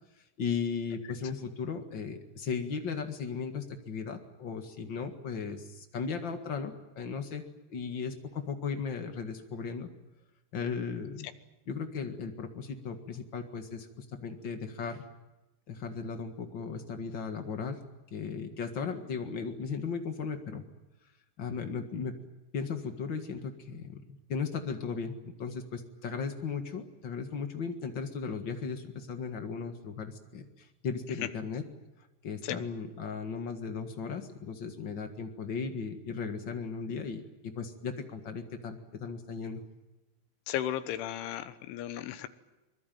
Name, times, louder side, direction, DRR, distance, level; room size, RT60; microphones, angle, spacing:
voice 1, 0.4-9.9 10.5-11.3 11.7-15.0 15.7-17.8 18.1-20.6 21.4-22.2 22.5-24.0 24.3-31.6 32.2-39.6, left 5 dB, 65° left, 6 dB, 1.1 m, -36 dB
voice 2, 40.5-42.3, left 12 dB, 90° left, 11 dB, 3.6 m, -35 dB
24.5 x 22.0 x 9.3 m, 1.0 s
omnidirectional pair, 5.3 m